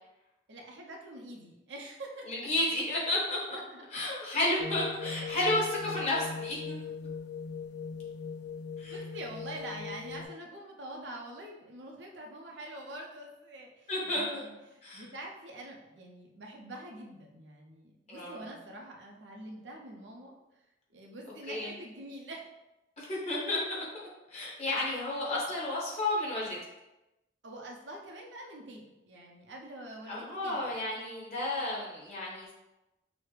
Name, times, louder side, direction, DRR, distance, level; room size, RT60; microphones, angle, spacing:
voice 1, 0.5-2.5 3.5-3.8 8.8-20.3 20.9-22.4 27.4-30.7, right 1 dB, 80° right, 0 dB, 0.7 m, -45 dB
voice 2, 2.3-3.6 3.9-6.8 8.8-9.0 13.9-14.4 14.8-15.0 18.1-18.5 21.5-21.7 23.0-26.6 30.1-32.5, left 1 dB, 35° left, -5 dB, 1.4 m, -32 dB
sound 1, 4.6-10.3, left 5 dB, 70° left, 0.6 m, -40 dB
6.2 x 2.1 x 3.3 m, 0.98 s
head